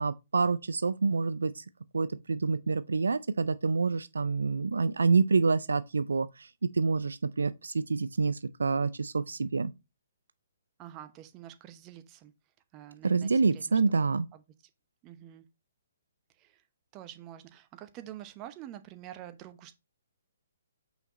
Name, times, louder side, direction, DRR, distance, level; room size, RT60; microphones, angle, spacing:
voice 1, 0.0-1.6 1.9-9.7 13.0-14.3, right 4 dB, 75° right, 0.4 m, -27 dB
voice 2, 10.8-12.3 12.7-14.4 15.0-15.5 16.4-16.6 16.9-19.8, right 12 dB, 25° right, 0.8 m, -47 dB
5.7 x 5.7 x 3.0 m
figure-of-eight pair, 135°, 0 cm